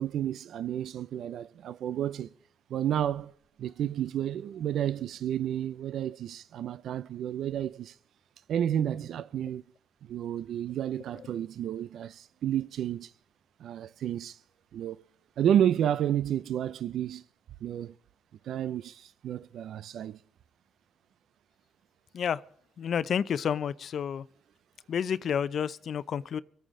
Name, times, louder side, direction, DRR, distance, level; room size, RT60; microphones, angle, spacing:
voice 1, 0.0-2.3 2.7-3.3 3.6-8.0 8.5-9.6 10.0-13.1 13.6-14.4 14.7-15.0 15.4-17.2 17.6-17.9 18.4-20.2, right 10 dB, 70° right, 0.4 m, -31 dB
voice 2, 22.8-24.2 24.9-26.4, left 8 dB, 60° left, 0.6 m, -30 dB
25.0 x 9.1 x 3.7 m
cardioid pair, 90°, 0 cm